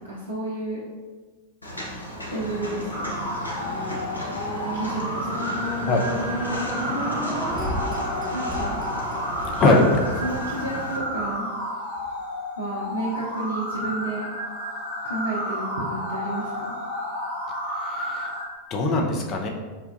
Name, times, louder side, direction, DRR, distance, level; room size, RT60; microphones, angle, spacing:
voice 1, 0.1-0.8 2.3-3.3 4.7-5.5 8.3-8.8 10.2-11.5 12.6-14.3 15.0-16.5, right 2 dB, 80° right, -6 dB, 0.5 m, -31 dB
Walk footsteps, 1.6-11.0, equal, 85° left, 0.5 m, -35 dB
sound 1, 2.4-12.7 13.3-13.4, equal, 20° right, 0.9 m, -33 dB
sound 2, 2.9-18.4, equal, 60° left, 1.0 m, -32 dB
voice 2, 9.6-10.0 17.8-18.3 18.7-19.5, left 2 dB, 35° left, 2 dB, 0.4 m, -21 dB
4.0 x 2.2 x 2.5 m, 1.4 s
figure-of-eight pair, 90°, 0 cm